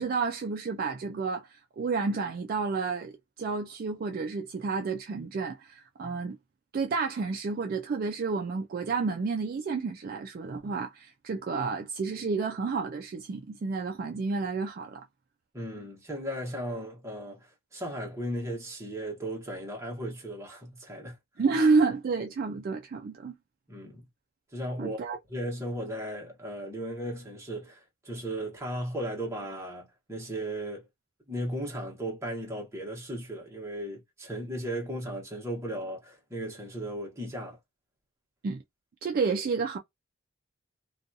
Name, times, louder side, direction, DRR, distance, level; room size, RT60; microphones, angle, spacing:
voice 1, 0.0-1.5 1.8-6.4 6.7-15.0 21.4-23.3 24.8-25.2 38.4-38.6 39.0-39.8, right 4 dB, 45° right, 0.3 m, -30 dB
voice 2, 15.5-21.2 23.7-24.1 24.5-25.0 25.3-30.9 31.3-37.6, right 1 dB, 15° right, 1.0 m, -36 dB
2.5 x 2.3 x 2.6 m
head